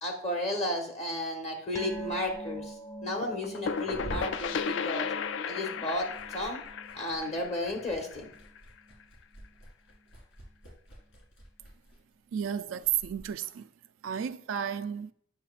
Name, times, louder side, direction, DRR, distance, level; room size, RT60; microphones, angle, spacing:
voice 1, 0.0-2.7 3.0-5.1 5.5-6.6 6.9-8.3, left 1 dB, 35° left, 1.1 m, -33 dB
sound 1, 1.7-8.6 8.8-9.1 9.4-9.5, right 1 dB, 15° left, 0.6 m, -44 dB
Liquid, 1.8-5.4 5.7-13.3, right 1 dB, 85° left, 2.3 m, -48 dB
sound 2, 3.2-8.8, left 6 dB, 65° left, 0.3 m, -35 dB
voice 2, 12.3-13.7 14.0-15.1, right 9 dB, 80° right, 0.3 m, -32 dB
8.2 x 5.8 x 2.4 m
head